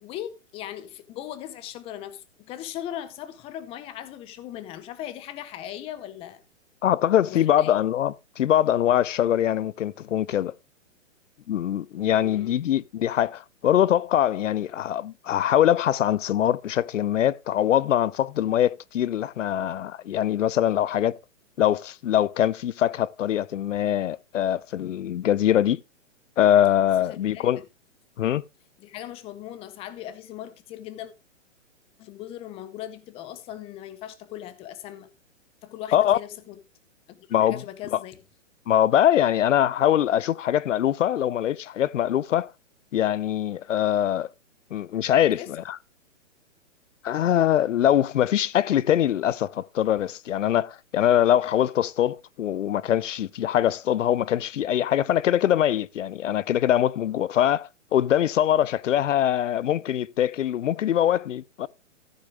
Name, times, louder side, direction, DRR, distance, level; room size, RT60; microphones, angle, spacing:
voice 1, 0.0-6.4 7.3-7.8 12.2-12.6 27.1-27.7 28.8-31.1 32.0-35.1 35.6-36.6 37.1-38.2 45.3-45.5, left 12 dB, 15° left, 0.7 m, -39 dB
voice 2, 6.8-10.5 11.5-21.2 21.6-25.8 26.4-27.6 28.2-28.4 35.9-36.2 37.3-37.6 38.7-42.5 42.9-44.3 44.7-45.8 47.0-61.7, left 11 dB, 75° left, 0.7 m, -23 dB
14.0 x 6.5 x 3.7 m
hypercardioid pair, 145°, 37 cm